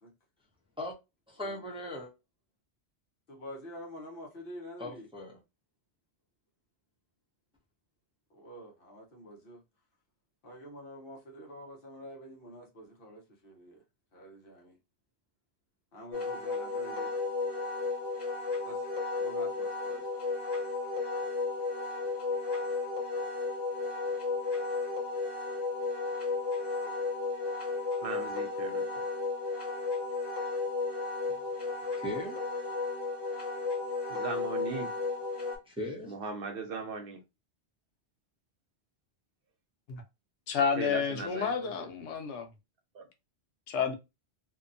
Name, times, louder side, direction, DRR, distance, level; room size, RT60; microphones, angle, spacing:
voice 1, 1.3-2.1 4.8-5.4 32.0-32.4 35.7-36.1, left 1 dB, 5° right, 0.7 m, -38 dB
voice 2, 3.3-5.1 8.3-9.6 10.4-13.8 14.1-14.8 15.9-17.1 18.6-18.9 19.2-20.3, equal, 55° left, 1.0 m, -47 dB
Wind instrument woodwind instrument, 16.1-35.6, left 3 dB, 25° left, 0.9 m, -33 dB
voice 3, 28.0-28.9 34.1-34.9 36.1-37.2 40.6-41.7 42.9-43.0, right 4 dB, 65° right, 0.7 m, -38 dB
voice 4, 40.5-42.5 43.7-43.9, left 6 dB, 85° left, 1.0 m, -30 dB
2.7 x 2.2 x 2.5 m
omnidirectional pair, 1.1 m